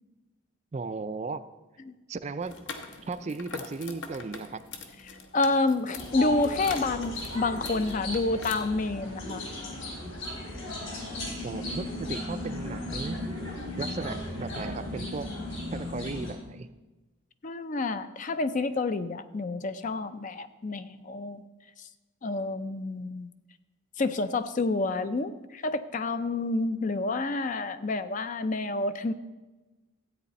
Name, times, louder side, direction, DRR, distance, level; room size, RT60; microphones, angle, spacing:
voice 1, 0.7-1.4 2.1-2.6 3.0-4.6 11.4-13.2 13.8-15.3 15.7-16.7, right 4 dB, 30° right, 11 dB, 0.3 m, -36 dB
sound 1, 2.4-8.5, left 4 dB, 60° left, 0.9 m, -43 dB
voice 2, 5.3-9.4 17.4-21.4 22.2-23.3 24.0-29.1, left 3 dB, 35° left, 12 dB, 0.4 m, -29 dB
sound 2, 5.9-16.3, left 1 dB, 75° left, 3.8 m, -36 dB
13.5 x 8.9 x 4.1 m, 1.1 s
head